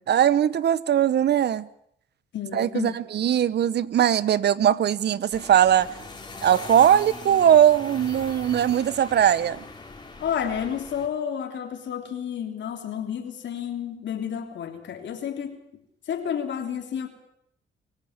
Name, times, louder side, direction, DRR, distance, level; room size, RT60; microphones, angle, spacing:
voice 1, 0.1-1.7 2.5-5.9 6.4-9.6, right 10 dB, 55° right, 18 dB, 1.0 m, -20 dB
voice 2, 2.3-3.0 10.2-15.6 16.1-17.1, left 8 dB, 65° left, 4 dB, 3.3 m, -31 dB
sound 1, 5.3-11.1, left 3 dB, 20° left, 3.8 m, -41 dB
25.0 x 16.0 x 7.4 m, 0.72 s
cardioid pair, 90°, 20 cm